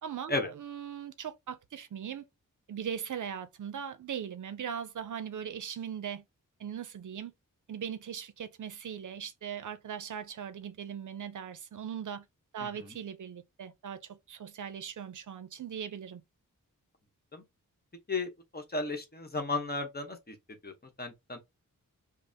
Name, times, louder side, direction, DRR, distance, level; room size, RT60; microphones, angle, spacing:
voice 1, 0.0-2.3 2.7-6.2 6.6-7.3 7.7-12.3 12.5-16.2, right 8 dB, 65° right, 0.5 m, -39 dB
voice 2, 18.1-20.7 21.0-21.4, left 3 dB, 30° left, 0.9 m, -34 dB
5.2 x 2.0 x 2.7 m
wide cardioid pair, 125°, 33 cm